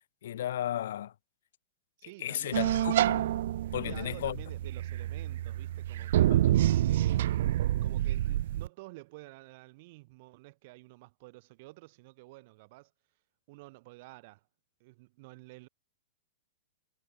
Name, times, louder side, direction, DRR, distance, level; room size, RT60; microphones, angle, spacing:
voice 1, 0.2-1.1 2.2-3.3 3.7-4.4 6.3-6.5, left 11 dB, 60° left, 0.3 m, -34 dB
voice 2, 2.0-2.6 3.7-6.6 6.9-7.4 7.8-12.9 13.5-14.4 14.8-15.7, right 23 dB, 40° right, 4.9 m, -51 dB
sound 1, 2.5-8.7, right 13 dB, 55° right, 0.3 m, -28 dB
supercardioid pair, 170°, 0 cm